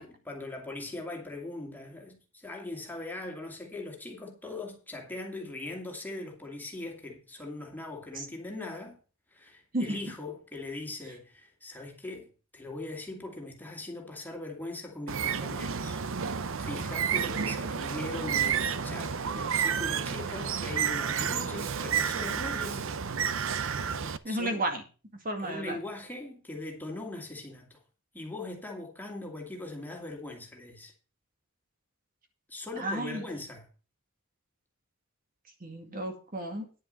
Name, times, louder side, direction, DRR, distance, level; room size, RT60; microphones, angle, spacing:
voice 1, 0.0-9.0 9.3-22.8 24.0-24.6 25.4-27.8 28.1-30.9 32.5-33.7, left 2 dB, 10° left, 2.5 m, -40 dB
Bird, 15.1-24.2, right 7 dB, 65° right, 0.7 m, -30 dB
voice 2, 24.2-24.8 25.2-25.8 32.8-33.2 35.6-36.7, right 1 dB, 40° right, 2.1 m, -32 dB
10.5 x 7.8 x 5.3 m
head